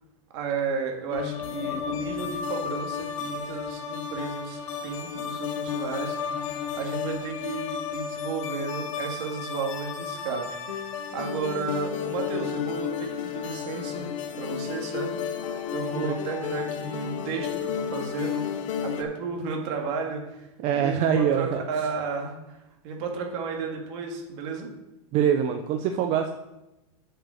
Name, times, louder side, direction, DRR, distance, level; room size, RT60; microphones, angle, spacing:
voice 1, 0.3-6.2 6.8-14.1 14.3-15.4 15.7-18.5 18.8-20.5 20.7-22.6 22.8-24.7, right 5 dB, 60° right, 1 dB, 2.0 m, -33 dB
sound 1, 1.1-19.0, left 8 dB, 75° left, 1.0 m, -32 dB
voice 2, 20.6-21.6 25.1-26.3, right 8 dB, 40° right, 6 dB, 0.6 m, -24 dB
7.5 x 5.4 x 6.4 m, 0.95 s
supercardioid pair, 130°, 17 cm